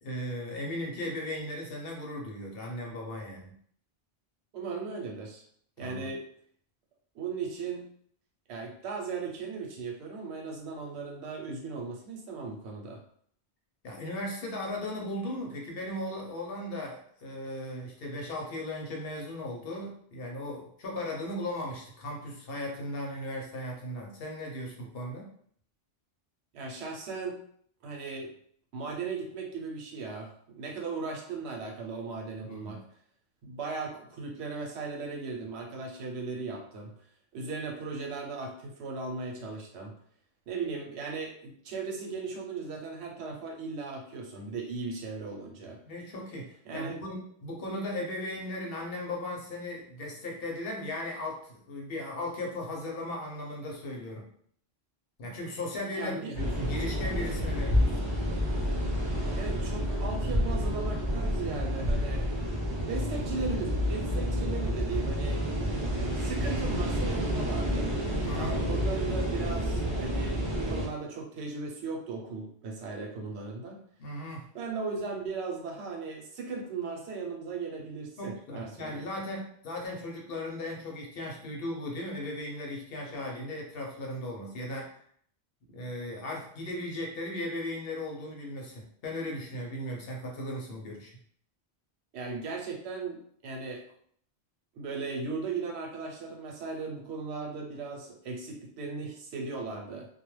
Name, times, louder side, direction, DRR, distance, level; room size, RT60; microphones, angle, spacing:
voice 1, 0.0-3.5 5.8-6.1 13.8-25.3 32.4-32.8 45.8-54.2 55.2-58.0 68.2-68.6 74.0-74.5 78.2-84.9 85.7-91.1, left 1 dB, 65° left, -1 dB, 0.9 m, -37 dB
voice 2, 4.5-5.4 5.8-6.3 7.1-7.9 8.5-13.0 26.5-27.4 27.8-28.3 28.7-32.8 33.4-36.9 37.3-39.9 40.5-45.8 46.7-47.0 55.9-56.3 59.3-62.3 62.9-65.4 66.2-67.9 68.3-73.8 74.5-79.1 92.1-93.8 94.7-100.1, right 4 dB, 90° right, 1 dB, 0.9 m, -37 dB
sound 1, 56.3-70.9, equal, 35° right, 0.6 m, -29 dB
2.3 x 2.1 x 3.1 m, 0.62 s
omnidirectional pair, 1.1 m